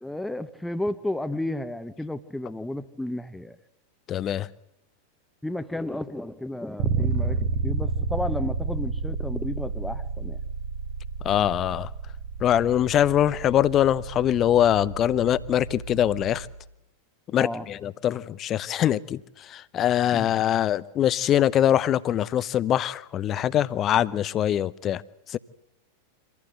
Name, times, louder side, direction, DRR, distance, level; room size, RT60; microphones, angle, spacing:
voice 1, 0.0-3.6 5.4-10.4 17.4-17.7 20.1-20.3, left 1 dB, 5° left, 1.1 m, -32 dB
voice 2, 4.1-4.5 11.2-11.9 12.4-16.5 17.3-19.2 19.5-25.0 25.3-25.4, left 11 dB, 30° left, 0.7 m, -23 dB
Bass guitar, 6.8-16.6, right 4 dB, 50° right, 1.4 m, -31 dB
25.0 x 15.5 x 7.8 m
figure-of-eight pair, 90°, 0 cm